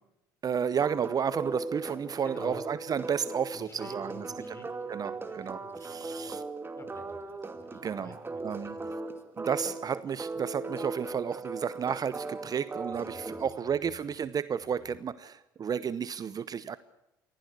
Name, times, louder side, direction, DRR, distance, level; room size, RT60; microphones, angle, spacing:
voice 1, 0.4-4.6 4.9-6.4 7.8-8.1 8.4-8.7 9.4-16.8, right 7 dB, 40° right, 16 dB, 0.8 m, -32 dB
sound 1, 0.8-13.5, right 3 dB, 20° right, 2.4 m, -39 dB
voice 2, 2.2-2.8 3.5-6.3 6.8-9.0 11.1-11.2 12.9-14.0 14.6-15.0, left 2 dB, 25° left, 9 dB, 5.5 m, -51 dB
24.5 x 16.0 x 8.2 m, 0.90 s
hypercardioid pair, 65°, 10 cm